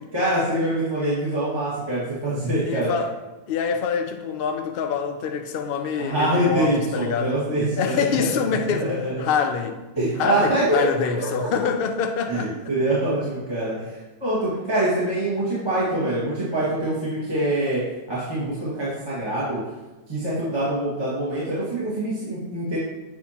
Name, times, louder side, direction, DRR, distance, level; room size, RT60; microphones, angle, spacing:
voice 1, 0.1-2.9 6.0-9.1 10.0-10.8 11.1-11.6 12.3-17.8 18.1-19.6 20.1-22.8, right 1 dB, 15° right, -10 dB, 1.7 m, -25 dB
voice 2, 2.6-3.1 3.5-7.4 7.8-8.9 9.2-9.8 10.2-12.5, left 6 dB, 70° left, 5 dB, 0.5 m, -25 dB
7.7 x 5.8 x 2.9 m, 1.1 s
omnidirectional pair, 1.8 m